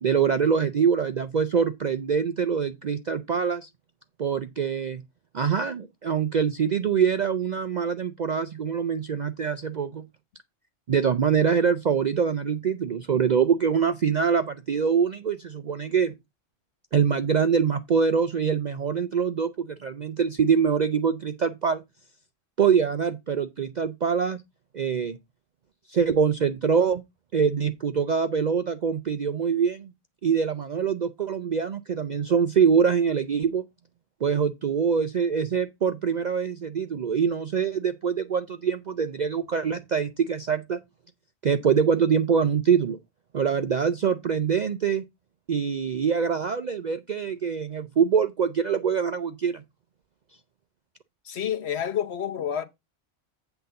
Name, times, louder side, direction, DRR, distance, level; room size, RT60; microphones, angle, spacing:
voice 1, 0.0-3.7 4.2-5.0 5.3-10.0 10.9-16.1 16.9-21.8 22.6-24.4 24.7-25.2 25.9-27.0 27.3-29.9 30.2-33.6 34.2-40.8 41.4-43.0 43.3-45.0 45.5-49.6, right 6 dB, 55° right, 0.5 m, -24 dB
voice 2, 51.2-52.7, left 9 dB, 60° left, 1.1 m, -29 dB
8.0 x 3.8 x 6.8 m
omnidirectional pair, 1.3 m